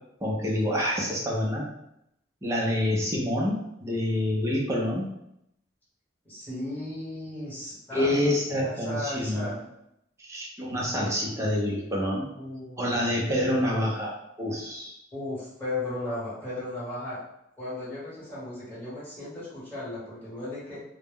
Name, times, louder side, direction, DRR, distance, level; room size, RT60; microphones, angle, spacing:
voice 1, 0.2-1.6 2.4-5.1 7.9-9.5 10.2-12.3 12.8-14.1 14.4-14.9, left 1 dB, 15° right, -3 dB, 0.6 m, -27 dB
voice 2, 6.2-8.3 8.6-9.7 12.3-13.2 15.1-17.2 17.6-20.8, left 1 dB, 10° left, -10 dB, 1.2 m, -36 dB
2.1 x 2.0 x 3.5 m, 0.80 s
head